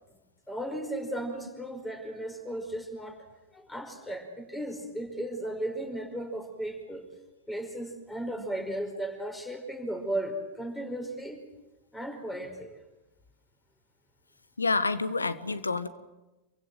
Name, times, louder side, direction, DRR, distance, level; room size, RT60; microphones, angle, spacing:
voice 1, 0.5-3.3 3.5-7.1 7.5-11.4 11.9-12.8, right 1 dB, 5° left, 5 dB, 5.1 m, -35 dB
voice 2, 14.6-15.9, left 3 dB, 80° left, 13 dB, 1.5 m, -28 dB
28.5 x 24.0 x 7.8 m, 1.1 s
figure-of-eight pair, 90°, 0 cm